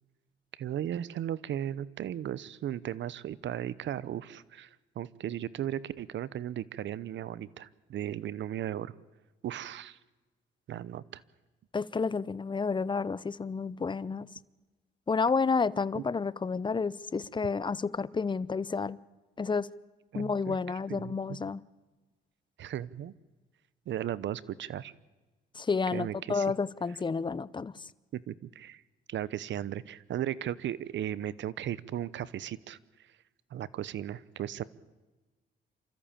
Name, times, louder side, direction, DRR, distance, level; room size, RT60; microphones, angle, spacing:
voice 1, 0.5-4.7 4.9-8.9 9.4-10.0 10.7-11.2 15.9-16.0 20.1-21.4 22.6-23.1 23.9-24.9 25.9-26.5 28.1-28.8 29.1-32.8 33.5-34.6, right 11 dB, 65° right, 20 dB, 0.9 m, -36 dB
voice 2, 11.7-14.3 15.1-19.0 19.4-19.7 20.1-21.6 25.6-27.7, left 4 dB, 25° left, 19 dB, 0.7 m, -30 dB
28.0 x 14.0 x 8.8 m, 1.2 s
cardioid pair, 90°, 20 cm